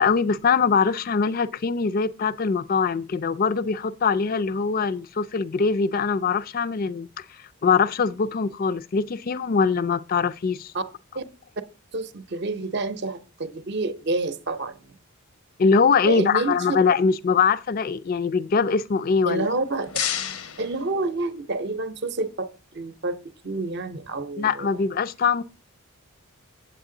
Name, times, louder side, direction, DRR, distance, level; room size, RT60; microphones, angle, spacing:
voice 1, 0.0-7.1 7.6-10.7 15.6-19.5 24.4-25.4, left 5 dB, 40° left, 0.3 m, -22 dB
voice 2, 11.9-15.0 16.0-16.8 19.2-19.9 20.6-23.2 23.4-24.8, right 2 dB, 50° right, 0.7 m, -28 dB
sound 1, 19.4-21.6, left 9 dB, 85° left, 0.8 m, -32 dB
8.1 x 8.0 x 3.8 m
head